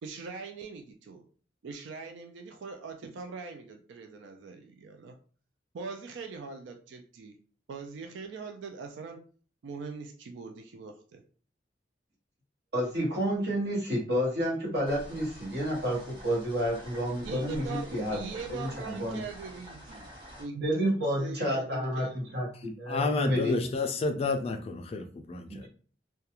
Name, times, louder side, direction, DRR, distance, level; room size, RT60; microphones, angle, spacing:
voice 1, 0.0-1.3 1.6-5.2 5.7-7.3 7.7-9.2 9.6-11.2 17.2-20.1 20.4-20.9 21.2-22.4, right 5 dB, 85° right, 5 dB, 0.4 m, -42 dB
voice 2, 12.7-18.2 18.5-19.2 20.6-23.7 25.5-25.7, equal, 65° right, -2 dB, 1.1 m, -30 dB
sound 1, 14.9-20.4, equal, 25° right, 1.1 m, -47 dB
voice 3, 22.9-25.7, left 3 dB, 35° left, 6 dB, 0.3 m, -30 dB
2.3 x 2.2 x 2.8 m, 0.42 s
head